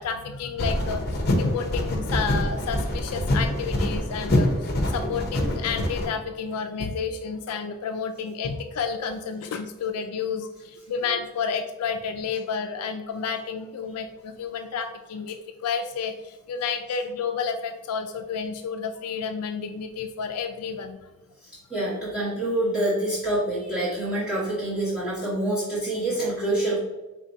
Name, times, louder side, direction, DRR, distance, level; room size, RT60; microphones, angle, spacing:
voice 1, 0.0-21.0, left 6 dB, 85° left, 6 dB, 0.4 m, -31 dB
sound 1, 0.6-6.1, left 1 dB, 45° left, 0.7 m, -25 dB
voice 2, 21.4-26.8, right 1 dB, 5° right, -12 dB, 1.3 m, -26 dB
5.1 x 3.5 x 2.7 m, 1.1 s
head